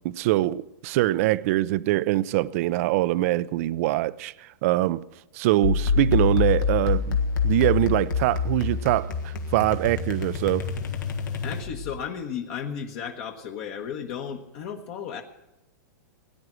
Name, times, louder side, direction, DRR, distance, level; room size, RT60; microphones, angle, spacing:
voice 1, 0.0-5.0 5.3-7.2 7.4-10.7, right 16 dB, 50° right, 0.5 m, -23 dB
sound 1, 5.6-12.0, left 6 dB, 80° left, 1.9 m, -26 dB
voice 2, 11.4-15.2, left 7 dB, 45° left, 1.2 m, -34 dB
18.0 x 9.7 x 6.2 m
hypercardioid pair, 135°, 10 cm